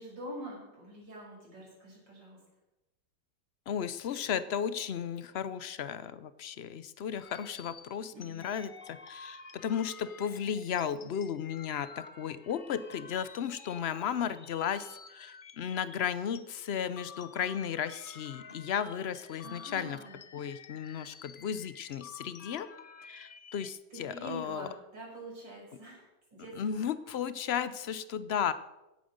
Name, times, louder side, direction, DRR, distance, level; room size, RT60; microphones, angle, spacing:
voice 1, 0.0-2.4 8.1-8.6 19.4-20.2 23.9-26.9, right 1 dB, 85° right, -3 dB, 6.5 m, -45 dB
voice 2, 3.7-20.0 20.3-22.7 23.1-24.7 26.6-28.5, left 8 dB, 80° left, 14 dB, 0.5 m, -34 dB
sound 1, 7.2-16.4 16.8-23.7, left 6 dB, 45° left, 0.7 m, -51 dB
16.5 x 9.0 x 6.5 m, 0.99 s
omnidirectional pair, 1.9 m